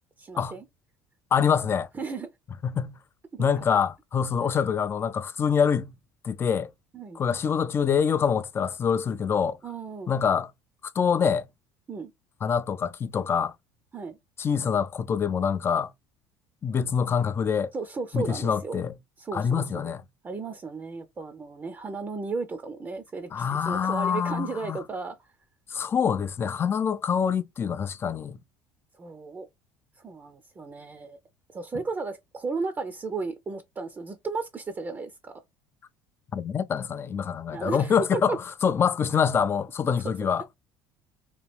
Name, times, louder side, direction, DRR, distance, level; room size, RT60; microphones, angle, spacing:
voice 1, 0.2-0.7 1.9-2.3 3.3-3.5 6.9-7.2 9.6-10.1 11.9-12.1 13.9-14.2 17.7-18.8 19.2-19.7 20.2-25.3 29.0-29.5 30.0-31.2 31.5-35.3 37.5-38.4, right 4 dB, 25° right, 0.5 m, -34 dB
voice 2, 1.3-1.9 2.6-3.0 3.4-5.9 6.2-6.7 7.2-9.6 10.1-10.5 11.0-11.5 12.4-13.5 14.4-15.9 16.6-17.7 18.1-18.9 19.3-20.0 23.3-24.8 25.7-28.4 36.3-40.5, left 7 dB, 30° left, 0.4 m, -25 dB
3.0 x 2.3 x 3.2 m
supercardioid pair, 90°, 8 cm